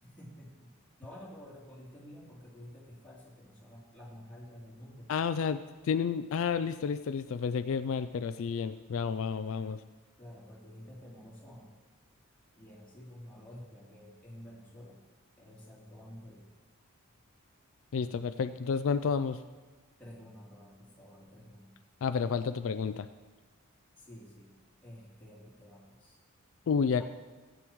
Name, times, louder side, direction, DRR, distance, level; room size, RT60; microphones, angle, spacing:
voice 1, 0.0-0.7 1.0-5.1 10.2-11.8 12.5-15.0 15.4-16.5 20.0-21.8 24.0-26.2, equal, 5° left, -8 dB, 3.2 m, -50 dB
voice 2, 5.1-9.8 17.9-19.4 22.0-23.1 26.7-27.0, left 6 dB, 65° left, 11 dB, 0.3 m, -31 dB
15.0 x 9.2 x 3.1 m, 1.4 s
head